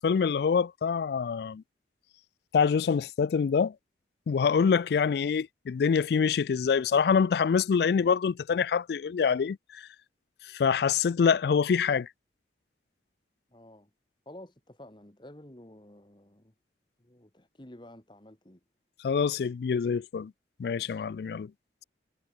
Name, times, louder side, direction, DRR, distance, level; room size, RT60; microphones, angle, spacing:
voice 1, 0.0-1.6 2.5-3.7 4.3-9.9 10.5-12.1 19.0-20.3 20.6-21.5, left 6 dB, 60° left, 0.3 m, -25 dB
voice 2, 13.5-13.9 14.3-16.5 17.0-18.6, left 1 dB, 25° left, 1.7 m, -51 dB
head